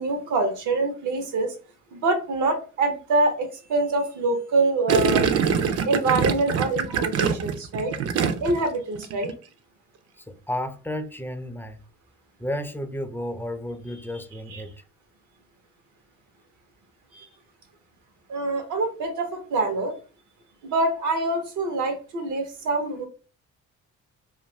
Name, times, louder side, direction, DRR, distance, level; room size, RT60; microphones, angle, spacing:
voice 1, 0.0-1.5 1.9-5.3 5.8-7.9 8.4-9.3 14.5-14.6 17.1-17.3 18.3-20.0 20.6-23.1, right 2 dB, 80° right, 0.8 m, -25 dB
Gurgling, 4.9-8.7 9.0-9.3, right 6 dB, 55° right, 0.5 m, -24 dB
voice 2, 10.2-11.8 12.4-14.7, left 1 dB, 5° left, 0.3 m, -32 dB
2.4 x 2.4 x 3.1 m
cardioid pair, 90°, 30 cm